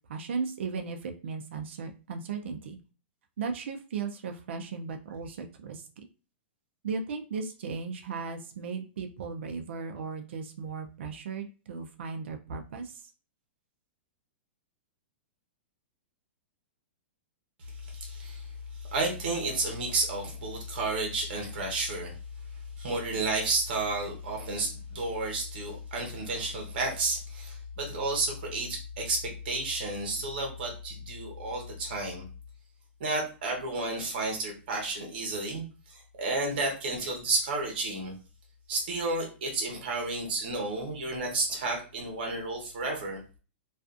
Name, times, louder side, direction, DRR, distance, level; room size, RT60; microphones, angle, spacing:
voice 1, 0.1-2.8 3.4-5.9 6.8-13.0, right 5 dB, 70° right, 5 dB, 0.4 m, -36 dB
voice 2, 17.6-22.2 22.8-32.2 33.0-38.1 38.7-43.2, right 2 dB, 50° right, 1 dB, 0.9 m, -32 dB
2.4 x 2.4 x 2.4 m, 0.35 s
supercardioid pair, 180°, 6 cm